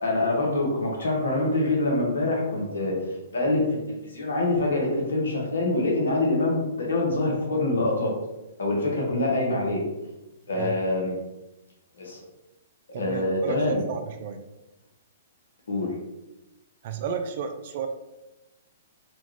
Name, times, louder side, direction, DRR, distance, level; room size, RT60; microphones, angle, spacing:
voice 1, 0.0-3.8 4.0-8.1 8.6-9.8 10.5-11.1 12.0-12.2 13.0-13.8 15.7-15.9, left 2 dB, 75° left, -1 dB, 1.1 m, -25 dB
voice 2, 12.9-14.4 16.8-17.9, right 6 dB, 50° right, 7 dB, 0.4 m, -32 dB
4.1 x 2.4 x 3.1 m, 0.99 s
figure-of-eight pair, 120°, 0 cm